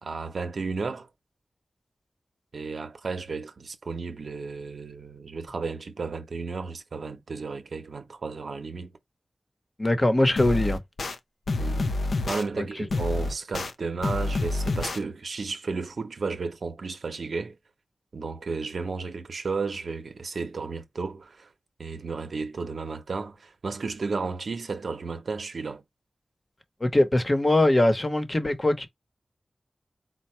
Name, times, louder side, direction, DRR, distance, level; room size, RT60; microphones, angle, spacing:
voice 1, 0.0-1.1 2.5-8.9 11.6-11.9 12.3-17.6 18.1-21.5 21.8-25.8, right 4 dB, 80° right, 0.8 m, -33 dB
voice 2, 9.8-10.8 12.6-12.7 26.8-28.9, left 1 dB, 35° left, 1.0 m, -22 dB
sound 1, 10.4-11.1 11.5-12.4 12.9-13.7 14.0-15.0, left 2 dB, 90° left, 0.6 m, -28 dB
4.4 x 2.3 x 4.4 m
wide cardioid pair, 60°, 0 cm